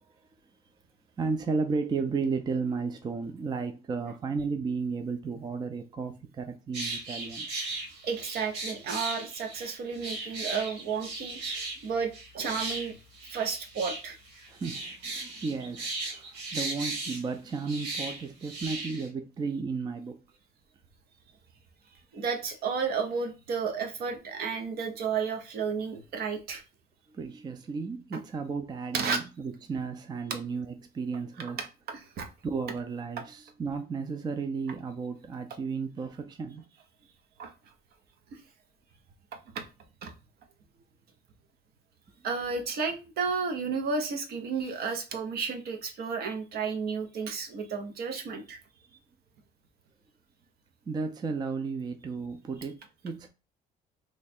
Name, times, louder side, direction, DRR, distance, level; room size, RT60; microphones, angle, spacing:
voice 1, 1.2-7.5 14.5-20.2 27.1-31.6 32.4-36.6 50.9-53.3, right 4 dB, 25° right, 0.4 m, -34 dB
sound 1, 6.7-19.1, right 2 dB, 90° right, 1.5 m, -37 dB
voice 2, 8.0-13.0 13.3-14.2 22.1-26.6 28.9-29.2 31.6-32.3 37.4-37.5 38.3-38.4 39.5-39.6 40.0-40.1 42.2-48.6, right 5 dB, 65° right, 0.9 m, -32 dB
3.1 x 2.4 x 4.2 m
cardioid pair, 110°, 17 cm